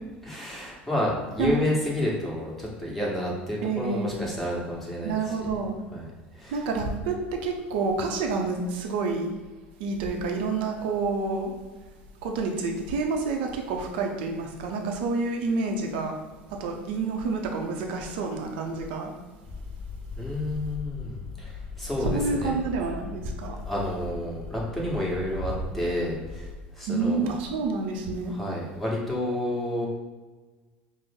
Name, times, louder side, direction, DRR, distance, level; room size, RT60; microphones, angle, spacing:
voice 1, 0.2-5.3 5.9-6.1 6.3-6.7 20.2-22.5 23.6-27.3 28.3-29.9, left 1 dB, ahead, -5 dB, 1.3 m, -30 dB
voice 2, 3.6-4.1 5.0-5.8 6.5-9.3 9.8-11.5 12.2-16.2 16.6-19.1 22.1-23.6 26.9-28.3, right 4 dB, 65° right, 3 dB, 0.6 m, -28 dB
sound 1, 19.4-26.6, left 4 dB, 20° left, 0.4 m, -39 dB
5.1 x 2.0 x 3.5 m, 1.3 s
hypercardioid pair, 70°, 6 cm